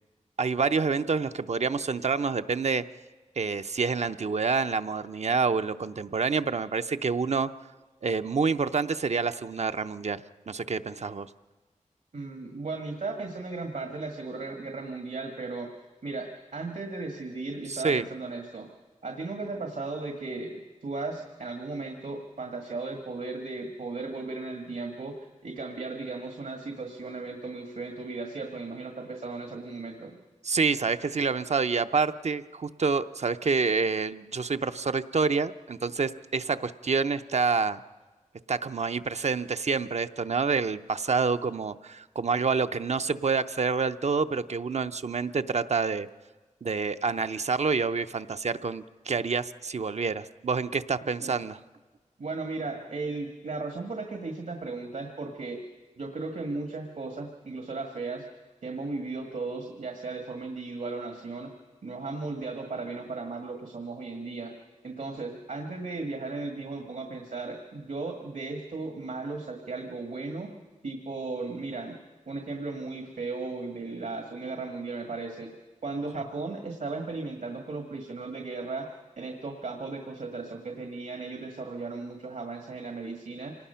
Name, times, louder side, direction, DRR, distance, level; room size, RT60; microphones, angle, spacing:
voice 1, 0.4-2.8 3.4-7.5 8.0-11.3 17.7-18.1 30.4-37.8 38.5-46.1 46.6-51.6, right 4 dB, 60° right, 10 dB, 0.7 m, -27 dB
voice 2, 12.1-15.7 16.0-18.7 19.0-30.2 51.2-51.4 52.2-55.6 56.0-58.2 58.6-61.5 61.8-64.5 64.8-70.5 70.8-71.9 72.3-75.5 75.8-78.9 79.2-83.6, right 3 dB, 80° right, 3 dB, 1.7 m, -36 dB
26.0 x 19.0 x 5.7 m, 1.3 s
wide cardioid pair, 75°, 13 cm